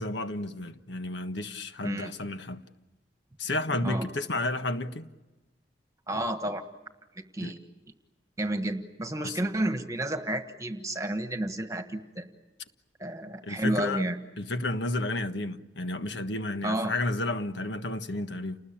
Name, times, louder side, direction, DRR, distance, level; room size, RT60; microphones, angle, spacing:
voice 1, 0.0-2.6 3.4-5.1 7.4-7.5 9.2-9.4 13.4-14.0 14.4-18.6, left 2 dB, 80° left, 1.5 m, -32 dB
voice 2, 6.1-6.6 7.3-7.6 8.4-12.3 13.0-14.2 16.6-16.9, right 1 dB, 20° right, 1.5 m, -31 dB
30.0 x 20.5 x 8.9 m
head